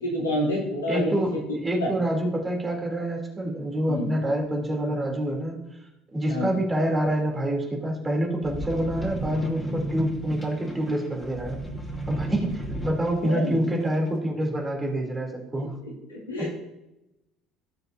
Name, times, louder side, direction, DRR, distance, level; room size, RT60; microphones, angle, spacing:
voice 1, 0.0-1.1 1.8-1.9 3.9-4.1 6.3-6.5 13.2-13.6 16.1-16.5, left 1 dB, 80° left, -5 dB, 3.2 m, -27 dB
voice 2, 0.9-5.6 6.1-11.6 12.1-15.8 16.4-16.5, right 1 dB, 20° right, -1 dB, 3.4 m, -27 dB
sound 1, 8.4-13.3 13.9-14.0, right 1 dB, 15° left, 4.2 m, -34 dB
19.0 x 6.7 x 2.9 m, 0.91 s
figure-of-eight pair, 60°, 0 cm